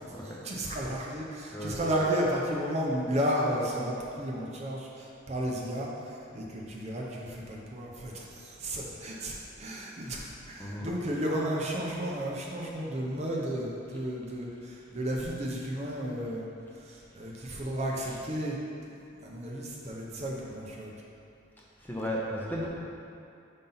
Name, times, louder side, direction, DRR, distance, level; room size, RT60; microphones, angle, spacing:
voice 1, 0.0-16.5 16.7-18.6 19.2-20.9, equal, 35° right, -3 dB, 0.7 m, -33 dB
voice 2, 1.5-2.0 10.6-10.9 15.4-15.5 18.0-18.2 21.8-22.7, equal, 10° left, -5 dB, 0.7 m, -35 dB
5.6 x 5.3 x 3.9 m, 2.6 s
head